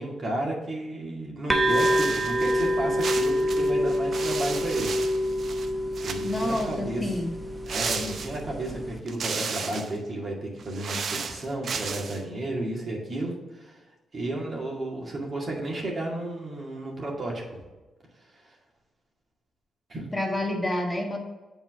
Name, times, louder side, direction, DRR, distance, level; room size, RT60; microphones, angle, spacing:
voice 1, 0.0-4.9 6.0-7.1 7.7-13.8 14.1-17.4 18.3-18.6 19.9-20.0, right 1 dB, 45° right, -2 dB, 2.2 m, -32 dB
sound 1, 1.5-9.0, equal, 15° right, 0.9 m, -27 dB
sound 2, 1.7-2.7 3.0-5.7 5.9-6.8 7.7-8.7 9.1-10.0 10.6-12.2, right 5 dB, 60° right, 0.6 m, -34 dB
voice 2, 6.2-7.3 20.1-21.2, left 1 dB, 20° left, 1 dB, 1.5 m, -28 dB
7.8 x 4.4 x 4.8 m, 1.2 s
supercardioid pair, 50°, 0 cm